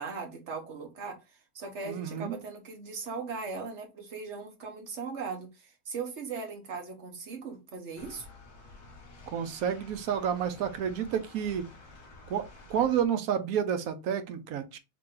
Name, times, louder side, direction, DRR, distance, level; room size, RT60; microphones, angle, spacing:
voice 1, 0.0-8.3, right 4 dB, 50° right, 1.1 m, -39 dB
voice 2, 1.9-2.4 9.3-11.7 12.3-12.4 12.7-14.8, right 8 dB, 70° right, 1.0 m, -30 dB
sound 1, 8.0-13.1, left 3 dB, 50° left, 1.1 m, -51 dB
3.0 x 2.9 x 3.6 m
omnidirectional pair, 1.7 m